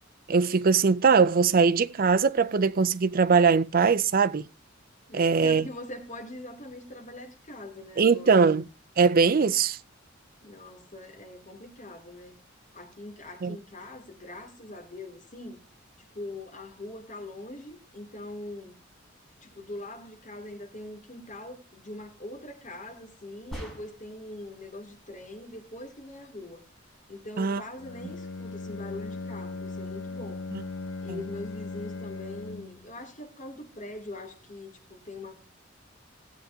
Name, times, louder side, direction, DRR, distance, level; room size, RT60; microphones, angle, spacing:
voice 1, 0.3-4.5 5.1-5.7 8.0-8.6 9.0-9.8 13.4-13.6 27.4-27.6 30.5-30.6, right 5 dB, 45° right, 0.5 m, -21 dB
voice 2, 5.1-8.5 10.4-12.4 12.7-15.6 16.0-18.7 19.4-26.6 27.1-30.5 31.0-35.3, left 2 dB, 40° left, 2.9 m, -42 dB
sound 1, 23.5-24.2, equal, ahead, 3.9 m, -40 dB
Bowed string instrument, 27.8-32.9, left 3 dB, 70° left, 0.5 m, -38 dB
18.0 x 8.0 x 2.8 m
head